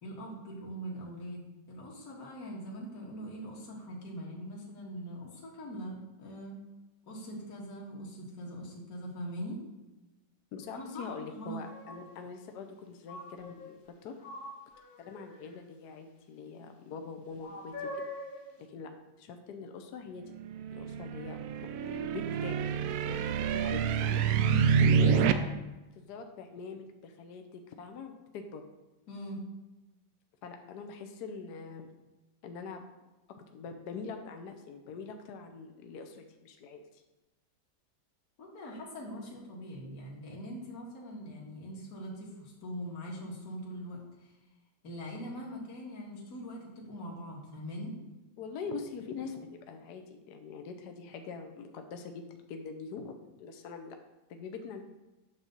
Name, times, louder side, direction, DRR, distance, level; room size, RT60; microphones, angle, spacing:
voice 1, 0.0-6.5 7.1-9.6 10.7-11.6 24.4-24.6 29.1-29.4 38.4-44.3 44.8-47.9, equal, 50° left, -3 dB, 2.0 m, -42 dB
voice 2, 10.5-14.1 15.0-17.9 18.7-18.9 19.2-20.3 20.7-21.4 21.8-22.6 23.0-24.2 24.8-25.5 26.0-28.6 30.4-31.9 32.4-32.8 33.4-37.0 48.4-54.0 54.3-54.8, left 5 dB, 65° left, 5 dB, 1.2 m, -43 dB
sound 1, 10.6-10.7 11.4-12.2 13.1-13.9 14.2-15.6 17.4-18.6, left 1 dB, 85° left, 2.2 m, -44 dB
sound 2, 20.3-25.3, right 7 dB, 75° right, 0.8 m, -27 dB
8.2 x 3.7 x 6.6 m, 1.1 s
omnidirectional pair, 2.1 m